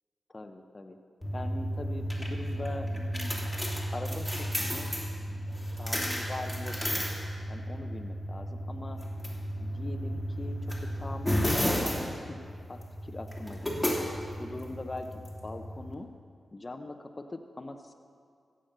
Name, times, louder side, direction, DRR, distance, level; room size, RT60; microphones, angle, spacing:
voice 1, 0.3-1.0 1.3-3.4 3.9-4.9 5.3-5.4 5.7-7.0 7.5-9.0 9.6-12.4 12.7-14.0 14.4-15.1 15.4-16.1 16.5-17.9, left 2 dB, 35° left, 5 dB, 0.8 m, -41 dB
sound 1, 1.2-15.9, equal, ahead, 2.9 m, -33 dB
15.5 x 7.7 x 6.6 m, 2.2 s
cardioid pair, 50°, 0 cm